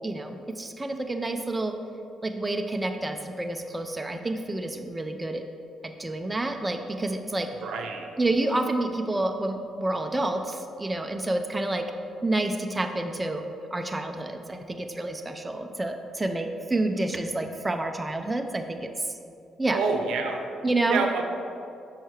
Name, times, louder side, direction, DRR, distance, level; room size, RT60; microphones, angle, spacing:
voice 1, 0.0-1.8 2.2-5.4 5.8-7.5 8.2-11.9 12.2-13.4 13.7-19.2 19.6-19.8 20.6-21.0, right 2 dB, 15° right, 5 dB, 0.4 m, -29 dB
voice 2, 7.6-8.1 19.7-20.5 20.9-21.2, right 4 dB, 80° right, 3 dB, 0.6 m, -27 dB
5.5 x 4.5 x 4.8 m, 2.6 s
cardioid pair, 90°, 0 cm